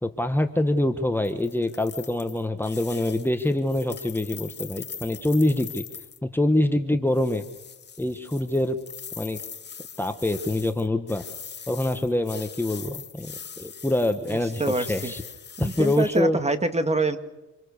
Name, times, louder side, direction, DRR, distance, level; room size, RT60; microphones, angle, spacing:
voice 1, 0.0-5.8 6.2-7.4 8.0-8.8 9.2-9.4 10.0-11.2 11.7-15.2 15.6-16.4, left 1 dB, 5° left, 7 dB, 1.4 m, -25 dB
sound 1, 1.2-6.2 7.1-16.2, left 7 dB, 35° left, 1.2 m, -42 dB
voice 2, 14.3-15.1 15.6-17.2, right 3 dB, 20° right, 9 dB, 2.1 m, -26 dB
27.5 x 22.5 x 6.8 m, 1.1 s
cardioid pair, 90°, 30 cm